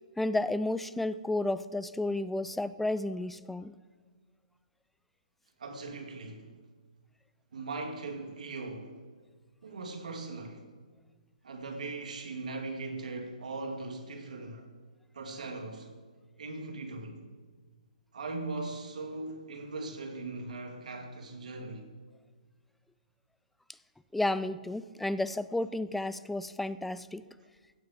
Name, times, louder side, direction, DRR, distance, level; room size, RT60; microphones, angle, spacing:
voice 1, 0.2-3.7 24.1-27.2, left 2 dB, 5° left, 0.3 m, -32 dB
voice 2, 5.6-6.5 7.5-8.9 9.6-10.6 11.4-14.7 15.1-15.9 16.4-17.2 18.1-21.8, right 3 dB, 65° right, 2.4 m, -39 dB
16.0 x 6.4 x 7.4 m
figure-of-eight pair, 130°, 4 cm